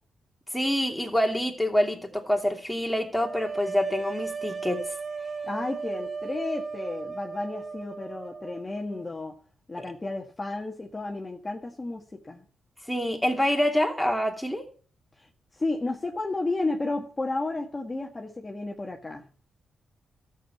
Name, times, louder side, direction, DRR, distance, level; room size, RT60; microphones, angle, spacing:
voice 1, 0.5-4.8 9.8-9.9 12.9-14.6, equal, 5° left, 2.8 m, -26 dB
sound 1, 3.2-9.1, right 5 dB, 30° right, 1.6 m, -36 dB
voice 2, 5.4-9.3 9.7-12.4 15.2-19.2, left 2 dB, 25° left, 1.6 m, -32 dB
13.0 x 7.6 x 8.4 m
cardioid pair, 90°, 0 cm